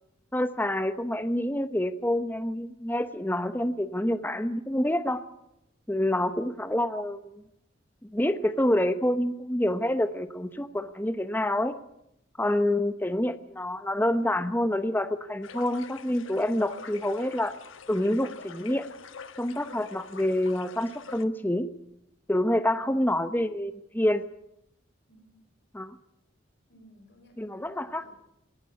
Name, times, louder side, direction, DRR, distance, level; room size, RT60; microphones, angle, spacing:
voice 1, 0.3-5.2 5.9-7.4 8.0-11.8 12.4-17.5 17.9-18.9 19.4-21.7 22.3-24.2 25.7-26.0 27.4-28.1, left 1 dB, 10° left, 10 dB, 0.9 m, -27 dB
voice 2, 6.1-6.6 22.7-23.0 25.1-25.4 26.7-28.1, equal, 55° left, 6 dB, 6.3 m, -58 dB
sound 1, 15.4-21.2, left 5 dB, 85° left, 1.3 m, -45 dB
21.5 x 18.0 x 9.7 m, 0.82 s
head